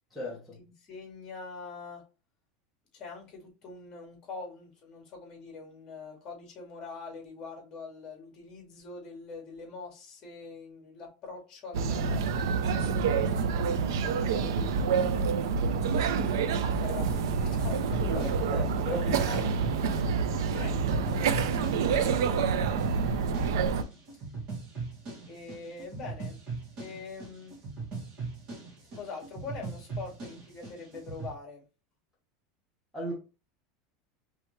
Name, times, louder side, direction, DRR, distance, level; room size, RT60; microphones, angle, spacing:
voice 1, 0.1-0.6 18.1-19.6 32.9-33.1, left 1 dB, ahead, 1.2 m, -37 dB
voice 2, 0.8-2.0 2.9-15.7 16.6-19.1 20.5-23.5 25.3-26.4 26.8-27.5 28.9-31.6, left 4 dB, 30° left, 2.0 m, -44 dB
sound 1, 11.7-23.8, right 5 dB, 85° right, 0.5 m, -27 dB
sound 2, 17.6-31.3, right 4 dB, 40° right, 2.0 m, -40 dB
4.6 x 3.4 x 3.1 m
supercardioid pair, 155°, 2 cm